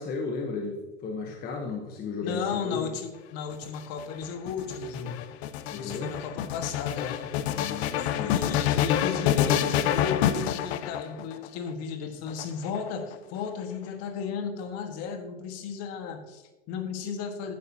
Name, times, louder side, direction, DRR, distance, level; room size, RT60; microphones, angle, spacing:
voice 1, 0.0-2.9 5.7-6.2 7.4-8.8, left 4 dB, 30° left, 2 dB, 1.1 m, -35 dB
voice 2, 2.2-5.2 5.7-7.3 8.0-17.5, left 6 dB, 50° left, 6 dB, 1.6 m, -34 dB
sound 1, 3.5-11.5 12.3-13.1, left 11 dB, 70° left, 0.7 m, -28 dB
11.0 x 9.3 x 2.8 m, 1.0 s
supercardioid pair, 120°, 33 cm